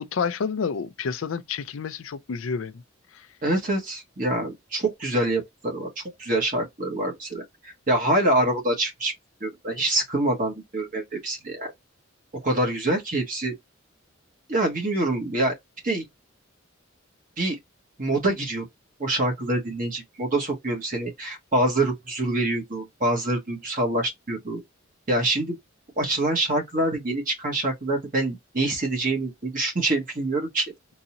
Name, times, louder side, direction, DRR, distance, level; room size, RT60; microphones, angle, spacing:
voice 1, 0.0-2.8 3.1-3.3, left 5 dB, 80° left, 0.5 m, -29 dB
voice 2, 3.4-5.9 6.2-9.1 9.4-11.7 12.4-13.6 14.5-15.5 15.8-16.0 17.4-17.5 18.0-18.6 19.0-24.6 25.1-25.6 26.0-30.6, right 1 dB, 45° right, 1.4 m, -25 dB
3.9 x 2.8 x 2.6 m
head